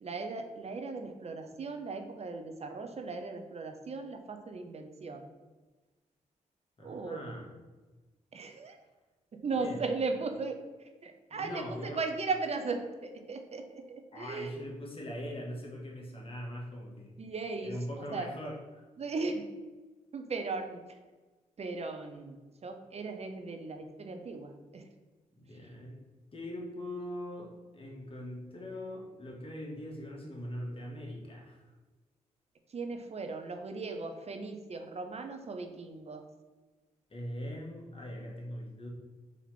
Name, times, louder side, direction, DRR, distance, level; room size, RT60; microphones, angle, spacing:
voice 1, 0.0-5.3 6.8-7.3 8.3-8.8 9.4-14.6 17.2-18.3 19.0-19.5 20.1-21.0 21.6-24.9 32.7-36.2, right 4 dB, 45° right, 5 dB, 0.6 m, -37 dB
voice 2, 6.8-7.5 9.5-9.8 11.3-12.0 14.1-17.1 17.6-18.8 25.4-26.0 26.3-31.6 37.1-38.9, equal, 40° left, -1 dB, 1.3 m, -41 dB
4.1 x 2.9 x 4.2 m, 1.2 s
supercardioid pair, 45°, 15 cm